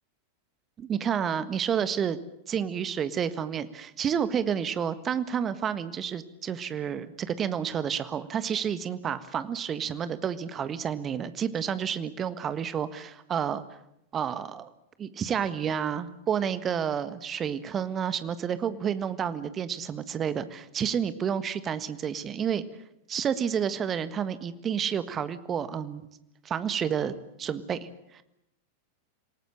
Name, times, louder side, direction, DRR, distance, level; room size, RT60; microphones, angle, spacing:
voice 1, 0.8-2.2 2.5-13.6 14.1-14.7 15.0-22.6 23.1-26.0 26.4-27.9 28.1-28.2, right 8 dB, 25° right, 13 dB, 1.5 m, -30 dB
27.0 x 18.0 x 8.8 m, 0.82 s
figure-of-eight pair, 90°, 0 cm